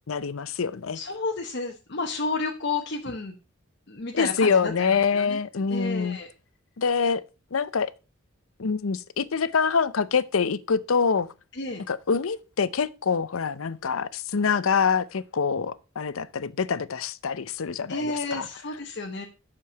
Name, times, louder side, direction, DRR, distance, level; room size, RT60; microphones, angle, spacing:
voice 1, 0.1-1.0 4.1-6.2 6.8-7.2 7.5-7.9 8.6-11.3 11.9-18.5, left 5 dB, 75° left, 0.6 m, -25 dB
voice 2, 0.9-3.3 3.9-5.4 5.7-6.3 11.5-11.8 17.9-19.3, left 3 dB, 50° left, 1.0 m, -31 dB
8.5 x 6.8 x 5.6 m
head